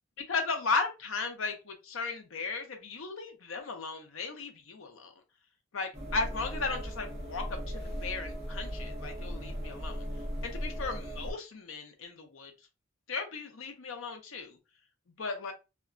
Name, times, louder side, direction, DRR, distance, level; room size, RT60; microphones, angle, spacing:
voice 1, 0.3-5.1 5.7-10.1 10.4-12.5 13.1-14.6 15.2-15.5, left 4 dB, 75° left, 5 dB, 0.6 m, -36 dB
sound 1, 5.9-11.3, equal, 35° right, 1.0 m, -37 dB
2.8 x 2.2 x 2.5 m, 0.27 s
head